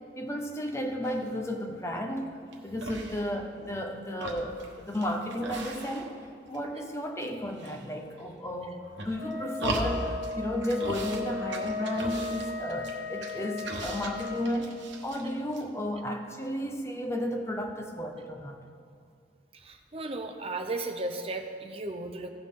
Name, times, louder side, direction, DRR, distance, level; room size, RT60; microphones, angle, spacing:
voice 1, 0.2-6.2 6.5-18.6, equal, 15° left, 3 dB, 0.7 m, -33 dB
sound 1, 1.0-1.4 1.9-2.5 2.8-3.8 4.1-6.3 6.5-7.3 7.6-8.3 8.8-10.3 10.6-11.2 11.5-15.3 15.5-15.6, right 2 dB, 70° right, 1.2 m, -38 dB
Wind instrument woodwind instrument, 9.1-14.5, left 4 dB, 30° left, 1.7 m, -37 dB
voice 2, 19.5-22.3, right 2 dB, 30° right, 5 dB, 0.7 m, -35 dB
16.5 x 6.0 x 3.7 m, 2.3 s
head